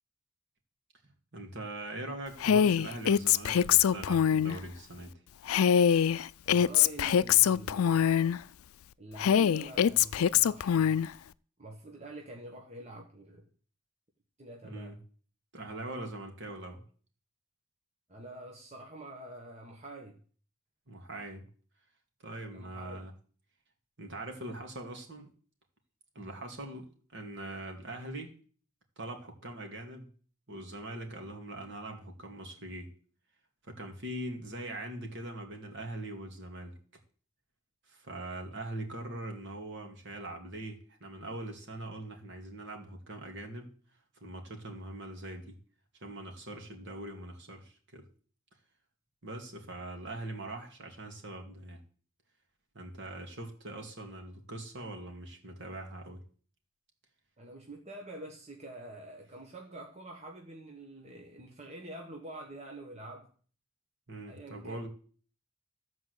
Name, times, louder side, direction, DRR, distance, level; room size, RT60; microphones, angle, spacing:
voice 1, 1.3-5.2 14.6-15.0 15.5-16.8 20.9-21.4 22.2-23.1 24.0-25.3 26.1-28.3 29.0-30.1 30.5-32.9 33.6-36.8 37.9-43.7 44.2-45.5 46.0-48.1 49.2-51.8 52.7-56.2 64.1-64.9, right 1 dB, 55° right, 2.5 m, -42 dB
Female speech woman speaking, 2.4-4.6 5.5-8.4 9.2-11.1, left 8 dB, 85° left, 0.4 m, -24 dB
voice 2, 6.4-8.4 9.0-11.0 11.6-13.5 14.4-15.0 18.1-20.2 22.5-23.1 57.4-63.3 64.3-64.8, right 1 dB, 30° right, 1.4 m, -46 dB
14.0 x 4.6 x 8.0 m
head